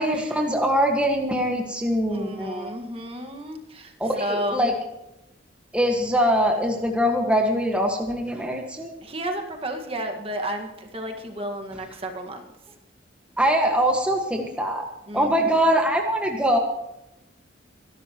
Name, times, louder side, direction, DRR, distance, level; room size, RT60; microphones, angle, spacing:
voice 1, 0.0-2.8 4.0-4.7 5.7-8.9 13.4-14.9 15.1-16.6, equal, 5° right, 1 dB, 1.6 m, -23 dB
voice 2, 2.1-4.7 9.0-12.4 15.1-15.6, right 1 dB, 30° right, 3 dB, 1.8 m, -32 dB
24.0 x 12.5 x 3.1 m, 0.88 s
head